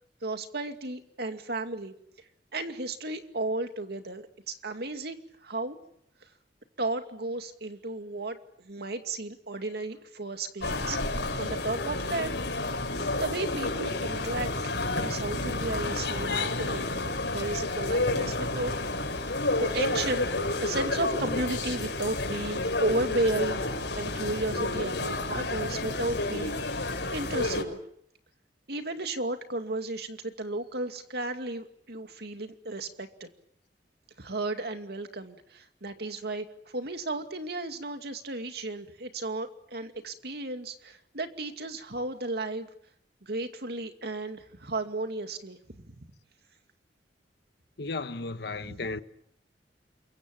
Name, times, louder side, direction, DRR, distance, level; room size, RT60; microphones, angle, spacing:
voice 1, 0.2-2.0 2.5-5.8 6.2-6.3 6.8-11.0 11.4-12.4 13.1-19.1 19.6-20.3 20.6-23.6 24.0-27.8 28.7-33.3 34.2-42.7 43.2-45.9 48.6-49.0, right 2 dB, 65° right, 2.4 m, -34 dB
sound 1, 10.6-27.6, left 2 dB, 90° left, 5.8 m, -30 dB
voice 2, 47.8-49.0, left 3 dB, 70° left, 1.2 m, -34 dB
28.0 x 23.5 x 7.8 m
head